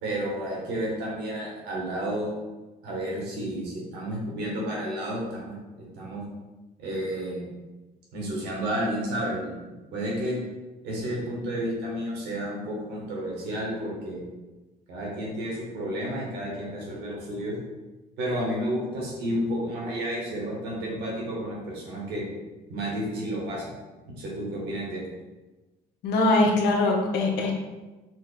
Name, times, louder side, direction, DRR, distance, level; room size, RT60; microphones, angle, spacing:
voice 1, 0.0-2.3 2.8-5.6 6.0-6.2 6.8-7.5 8.1-9.6 9.9-10.4 10.8-14.2 14.9-17.6 18.2-22.2 22.7-23.7 24.1-25.0, equal, 80° right, -3 dB, 1.5 m, -31 dB
voice 2, 26.0-27.5, left 2 dB, 80° left, 0 dB, 0.8 m, -22 dB
4.5 x 2.0 x 4.1 m, 1.2 s
cardioid pair, 110°, 17 cm